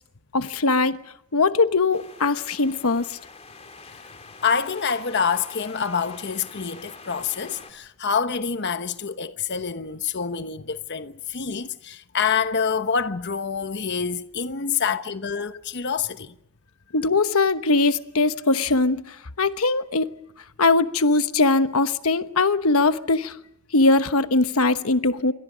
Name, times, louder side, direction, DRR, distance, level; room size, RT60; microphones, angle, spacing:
voice 1, 0.3-1.0 1.3-3.2 16.9-20.1 20.6-23.4 23.7-25.3, left 3 dB, 90° left, 1.1 m, -21 dB
sound 1, 1.9-7.7, left 3 dB, 30° left, 4.2 m, -45 dB
voice 2, 4.4-16.3, left 6 dB, 55° left, 1.0 m, -26 dB
28.0 x 24.5 x 5.1 m
head